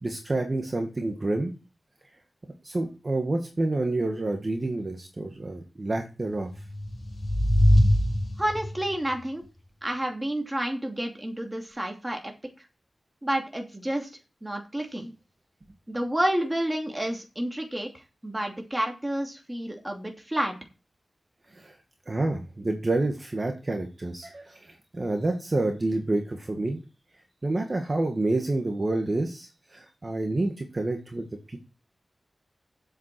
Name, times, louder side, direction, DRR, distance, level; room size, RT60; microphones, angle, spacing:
voice 1, 0.0-1.5 2.6-6.5 21.5-21.7 22.1-24.6 24.9-26.8 27.4-31.6, right 2 dB, 35° right, 3 dB, 1.8 m, -28 dB
sound 1, 6.5-8.9, equal, 55° left, 3.9 m, -22 dB
voice 2, 8.4-9.4 9.8-12.3 13.2-14.1 14.4-15.1 15.9-17.9 18.2-20.5, right 1 dB, 15° right, 3 dB, 2.7 m, -29 dB
8.1 x 7.5 x 7.5 m, 0.32 s
wide cardioid pair, 95°, 0 cm